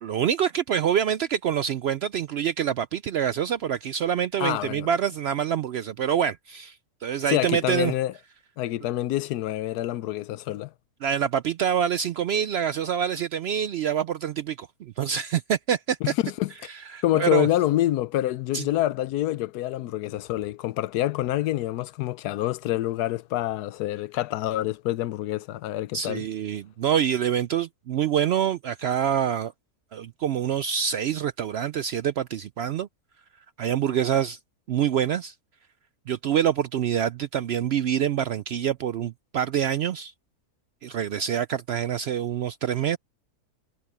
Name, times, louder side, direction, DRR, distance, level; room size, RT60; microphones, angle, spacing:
voice 1, 0.0-7.9 11.0-16.0 16.7-17.5 18.5-18.6 25.9-29.5 29.9-32.9 33.6-34.4 34.7-35.3 36.1-40.1 40.8-43.0, right 9 dB, 80° right, 0.5 m, -26 dB
voice 2, 4.4-4.9 7.3-8.1 8.6-10.7 16.0-16.5 17.0-26.2, left 14 dB, 85° left, 1.2 m, -26 dB
omnidirectional pair, 1.6 m